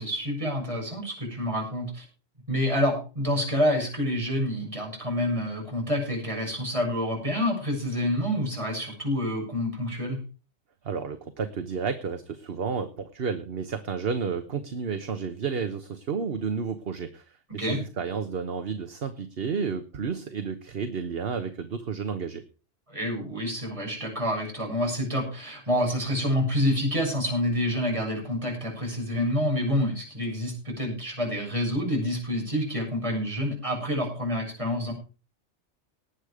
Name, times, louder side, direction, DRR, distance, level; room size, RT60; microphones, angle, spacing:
voice 1, 0.0-2.0 2.5-10.2 17.6-17.8 22.9-34.9, equal, 25° right, -1 dB, 7.1 m, -28 dB
voice 2, 10.8-22.4, right 6 dB, 60° right, 9 dB, 1.3 m, -31 dB
19.0 x 8.2 x 5.0 m, 0.35 s
omnidirectional pair, 1.2 m